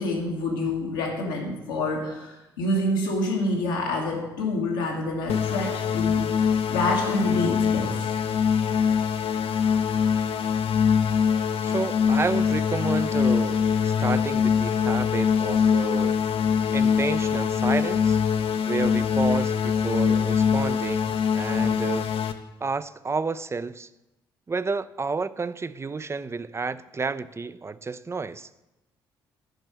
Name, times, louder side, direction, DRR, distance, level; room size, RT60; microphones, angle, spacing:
voice 1, 0.0-6.3 6.7-8.2, left 2 dB, 85° left, 1.6 m, -27 dB
sound 1, 5.3-22.3, left 7 dB, 60° left, 0.7 m, -23 dB
voice 2, 11.6-16.2 16.7-18.2 18.7-22.1 22.6-23.9 24.5-28.5, right 4 dB, 25° right, 0.5 m, -30 dB
9.0 x 5.5 x 7.6 m
hypercardioid pair, 50°, 11 cm